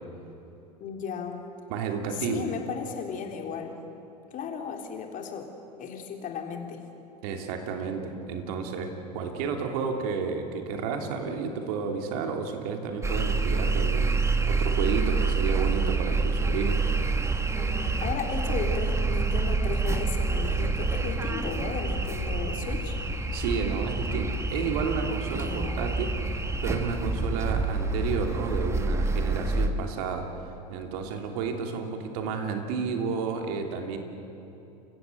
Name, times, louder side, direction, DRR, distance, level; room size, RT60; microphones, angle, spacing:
voice 1, 0.8-1.5 2.2-3.8 4.3-5.5 5.8-6.8 17.5-23.0 25.2-25.9, left 6 dB, 40° left, 3 dB, 3.5 m, -35 dB
voice 2, 1.7-2.5 7.2-16.8 23.3-30.3 30.7-34.0, right 5 dB, 65° right, 4 dB, 3.1 m, -31 dB
sound 1, 13.0-29.7, right 3 dB, 15° right, 1.6 m, -27 dB
29.5 x 16.0 x 7.9 m, 3.0 s
hypercardioid pair, 85°, 21 cm